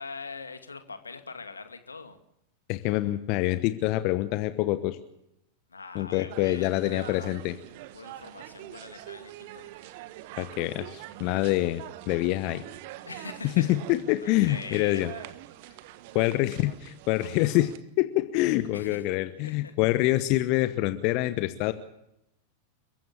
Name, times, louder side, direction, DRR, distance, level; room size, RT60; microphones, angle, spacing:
voice 1, 0.0-2.2 5.7-7.4 7.9-9.8 13.0-13.7 14.2-15.2 18.7-19.0 19.4-19.8, left 4 dB, 75° left, 8 dB, 2.4 m, -42 dB
voice 2, 2.7-5.0 5.9-7.5 10.4-12.6 13.4-15.1 16.1-17.7 18.0-21.7, left 17 dB, 45° left, 12 dB, 1.1 m, -26 dB
sound 1, 6.3-17.8, right 15 dB, 50° right, 1.4 m, -45 dB
29.5 x 15.5 x 7.1 m, 0.82 s
figure-of-eight pair, 90°, 0 cm